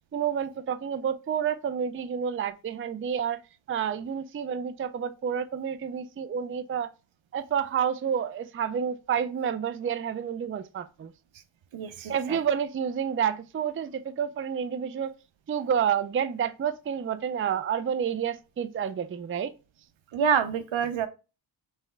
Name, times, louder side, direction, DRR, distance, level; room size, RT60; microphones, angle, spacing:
voice 1, 0.1-3.4 3.7-6.9 7.3-11.1 12.1-15.1 15.5-19.5, right 8 dB, 30° right, 0.4 m, -29 dB
voice 2, 11.7-12.4 20.1-21.1, right 7 dB, 75° right, 0.8 m, -27 dB
3.3 x 3.2 x 4.4 m
cardioid pair, 60°, 48 cm